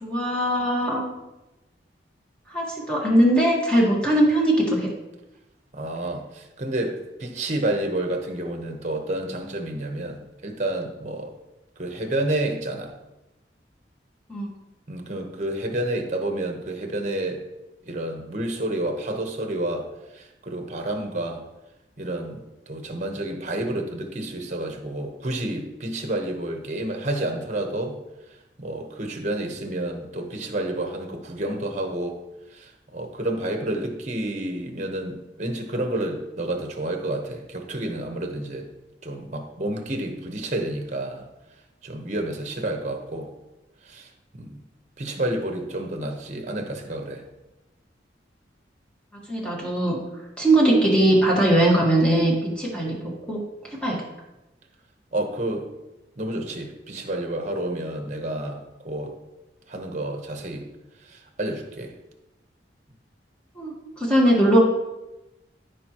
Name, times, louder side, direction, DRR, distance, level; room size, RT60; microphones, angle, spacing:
voice 1, 0.0-1.0 2.5-4.9 14.3-14.5 49.3-50.0 50.4-52.9 53.3-53.4 53.8-54.0 63.6-63.7 64.0-64.6, right 1 dB, 5° left, -4 dB, 1.6 m, -20 dB
voice 2, 5.7-11.3 11.8-12.9 14.9-17.4 17.8-19.9 20.1-21.4 22.0-28.0 28.6-32.2 32.5-38.7 39.0-41.2 41.8-43.3 43.9-44.6 45.0-47.2 55.1-55.7 56.2-59.2 59.7-60.7 61.1-61.9, right 1 dB, 40° right, 4 dB, 1.0 m, -30 dB
14.5 x 5.0 x 3.0 m, 0.99 s
head